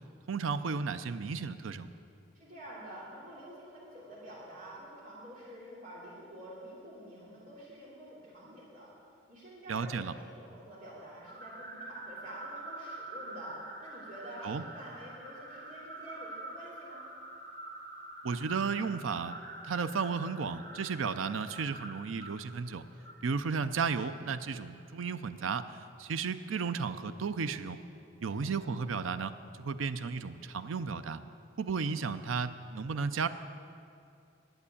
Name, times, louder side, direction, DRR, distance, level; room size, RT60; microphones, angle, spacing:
voice 1, 0.3-1.9 9.7-10.1 14.4-14.6 18.2-19.4 19.6-22.8 23.2-27.8 28.2-29.3 29.6-31.2 31.6-33.3, right 5 dB, 90° right, 12 dB, 0.5 m, -34 dB
voice 2, 2.3-8.9 9.3-17.0 28.2-28.4, right 1 dB, 40° right, -7 dB, 3.0 m, -48 dB
sound 1, 11.2-24.6, right 2 dB, 55° right, 2.1 m, -46 dB
11.0 x 7.9 x 8.4 m, 2.5 s
head